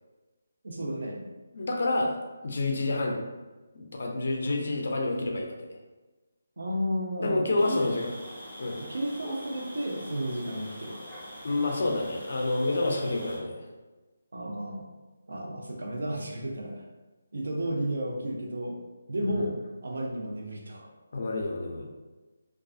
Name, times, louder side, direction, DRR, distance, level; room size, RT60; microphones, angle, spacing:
voice 1, 0.6-1.2 6.6-7.8 8.8-10.9 14.3-14.9 15.3-16.8 17.3-18.8 19.1-19.6 19.8-20.9, equal, 65° right, 0 dB, 0.5 m, -32 dB
voice 2, 1.5-2.2 2.4-3.2 3.7-5.7 7.2-8.1 8.6-8.8 11.4-13.7 19.2-19.4 21.1-21.9, left 2 dB, 50° left, 1 dB, 0.4 m, -28 dB
sound 1, 7.6-13.4, equal, 5° right, 0.8 m, -44 dB
2.4 x 2.3 x 2.3 m, 1.2 s
hypercardioid pair, 175°, 0 cm